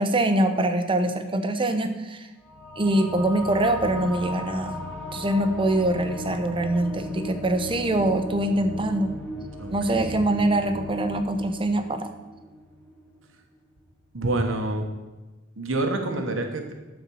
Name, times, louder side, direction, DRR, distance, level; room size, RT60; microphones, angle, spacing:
voice 1, 0.0-2.3 2.8-4.8 5.1-9.1 9.7-12.1, right 1 dB, 25° right, 8 dB, 0.8 m, -24 dB
sound 1, 2.4-13.3, left 1 dB, 5° left, 1.6 m, -37 dB
voice 2, 9.6-10.3 14.1-14.9 15.6-16.7, right 2 dB, 85° right, 4 dB, 1.3 m, -27 dB
12.5 x 4.5 x 7.0 m, 1.2 s
head